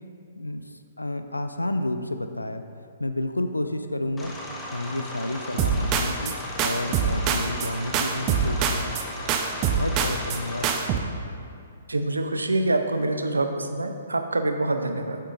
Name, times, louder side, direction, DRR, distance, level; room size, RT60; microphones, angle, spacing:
voice 1, 1.0-2.6 3.0-4.3 4.7-6.3 6.6-8.9 9.7-10.7, left 1 dB, 90° left, 8 dB, 0.4 m, -30 dB
sound 1, 4.2-10.8, left 1 dB, 10° left, 0.9 m, -37 dB
sound 2, 5.6-6.3 6.6-7.7 7.9-9.0 9.3-10.4 10.6-11.0, right 6 dB, 30° right, 0.5 m, -24 dB
voice 2, 11.9-15.2, right 2 dB, 80° right, 7 dB, 0.6 m, -25 dB
8.2 x 7.5 x 2.6 m, 2.5 s
figure-of-eight pair, 125°, 0 cm